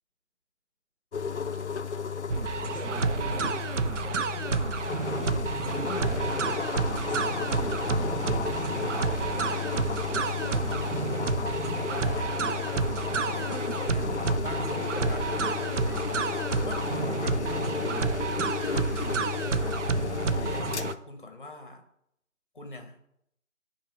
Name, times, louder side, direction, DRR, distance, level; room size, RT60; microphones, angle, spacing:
sound 1, 1.1-21.0, left 6 dB, 60° left, 0.5 m, -33 dB
sound 2, 2.3-20.9, right 5 dB, 65° right, 0.5 m, -30 dB
voice 1, 2.7-3.6 5.6-9.3 10.6-11.3 13.8-14.6 16.7-18.2 19.0-19.5, right 1 dB, 20° right, -10 dB, 2.8 m, -39 dB
voice 2, 4.0-4.9 10.1-11.1 11.7-14.1 14.4-16.0 16.6-18.1 20.2-21.8 22.5-23.0, left 2 dB, 40° left, 5 dB, 0.9 m, -44 dB
8.5 x 3.1 x 5.1 m, 0.77 s
figure-of-eight pair, 170°, 39 cm